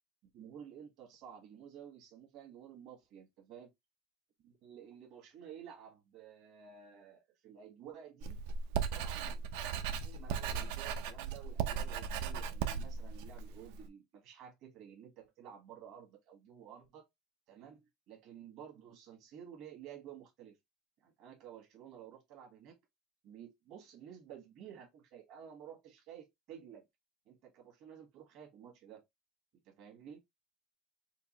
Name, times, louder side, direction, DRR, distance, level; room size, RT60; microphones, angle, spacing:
voice 1, 0.3-3.7 4.4-8.4 8.9-17.0 17.5-20.6 21.0-22.8 23.2-26.8 27.2-29.0 29.6-30.2, right 9 dB, 45° right, 1.5 m, -53 dB
Writing, 8.2-13.9, right 7 dB, 70° right, 0.5 m, -37 dB
4.4 x 2.3 x 3.0 m
cardioid pair, 175°, 0 cm